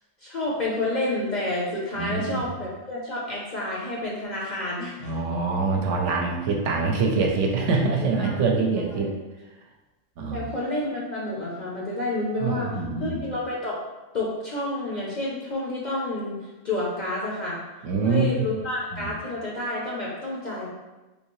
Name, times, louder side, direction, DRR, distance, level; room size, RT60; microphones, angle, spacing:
voice 1, 0.2-5.2 8.2-8.4 8.7-9.1 10.3-13.8 14.1-16.4 16.6-17.6 18.0-20.7, left 2 dB, 50° left, -5 dB, 0.5 m, -29 dB
voice 2, 2.0-2.4 5.0-9.1 10.2-10.5 12.4-13.3 17.8-18.5 18.9-19.1, right 4 dB, 75° right, 0 dB, 0.9 m, -25 dB
3.4 x 2.7 x 2.9 m, 1.1 s
omnidirectional pair, 1.3 m